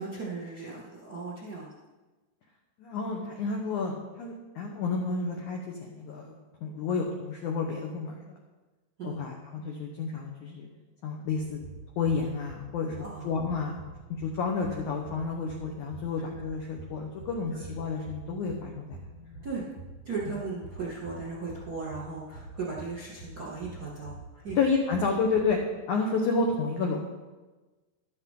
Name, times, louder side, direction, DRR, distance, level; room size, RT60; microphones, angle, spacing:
voice 1, 0.0-1.7 9.0-9.2 13.0-13.3 17.5-17.6 19.4-19.7 20.0-24.6, right 4 dB, 35° right, -5 dB, 1.5 m, -37 dB
voice 2, 2.8-6.3 6.6-8.4 9.0-10.7 11.0-11.6 12.0-19.4 24.5-25.6 25.9-27.0, left 4 dB, 85° left, 1 dB, 1.7 m, -30 dB
sound 1, 11.5-25.5, right 3 dB, 55° left, 1.5 m, -46 dB
13.5 x 11.5 x 3.8 m, 1.2 s
omnidirectional pair, 5.1 m